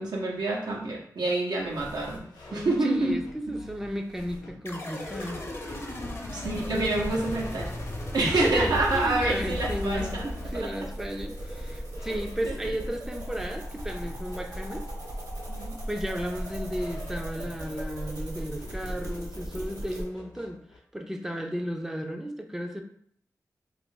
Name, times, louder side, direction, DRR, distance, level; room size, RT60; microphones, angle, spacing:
voice 1, 0.0-2.2 2.5-3.2 6.3-7.7 8.1-10.7 12.4-12.6 15.5-15.8, right 2 dB, 85° right, -3 dB, 0.8 m, -27 dB
sound 1, 1.6-20.8, left 1 dB, 85° left, 0.7 m, -48 dB
voice 2, 2.5-5.4 8.2-14.9 15.9-20.6 20.9-22.8, equal, 5° right, 3 dB, 0.4 m, -34 dB
sound 2, 4.7-11.1, left 2 dB, 40° left, 0.6 m, -36 dB
sound 3, 6.4-20.0, right 1 dB, 60° right, 1.1 m, -38 dB
2.6 x 2.5 x 3.7 m, 0.64 s
cardioid pair, 55°, 7 cm